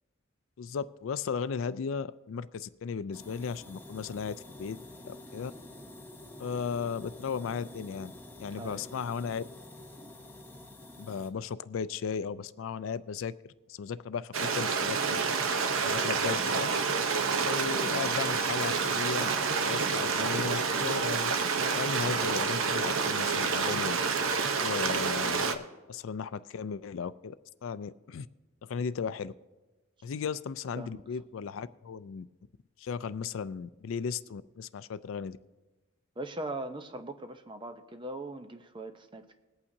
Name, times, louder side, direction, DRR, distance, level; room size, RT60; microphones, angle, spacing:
voice 1, 0.6-5.5 6.4-8.1 8.4-9.4 11.0-15.2 15.8-16.7 17.4-19.3 19.6-21.3 21.7-24.0 24.6-27.4 27.6-28.3 28.6-29.3 30.0-32.3 32.8-35.4, left 6 dB, 75° left, 15 dB, 0.4 m, -36 dB
sound 1, 3.1-11.3, left 1 dB, 10° left, 0.9 m, -48 dB
voice 2, 8.5-9.0 17.7-18.1 30.8-31.0 36.2-39.4, right 2 dB, 25° right, 7 dB, 0.7 m, -41 dB
Stream, 14.3-25.5, right 5 dB, 85° right, 0.8 m, -28 dB
21.0 x 8.6 x 2.7 m, 1.2 s
head